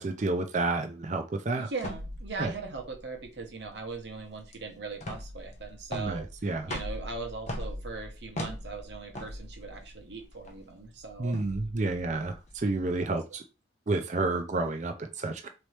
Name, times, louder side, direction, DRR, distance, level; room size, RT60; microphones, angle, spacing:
voice 1, 0.0-1.7 2.4-2.5 5.9-6.7 11.2-13.4 13.9-15.5, right 2 dB, 40° right, 6 dB, 0.4 m, -30 dB
voice 2, 1.6-11.3, right 4 dB, 65° right, 3 dB, 1.1 m, -40 dB
sound 1, 1.8-13.0, equal, 40° left, 0.9 m, -41 dB
4.0 x 3.1 x 3.2 m, 0.29 s
head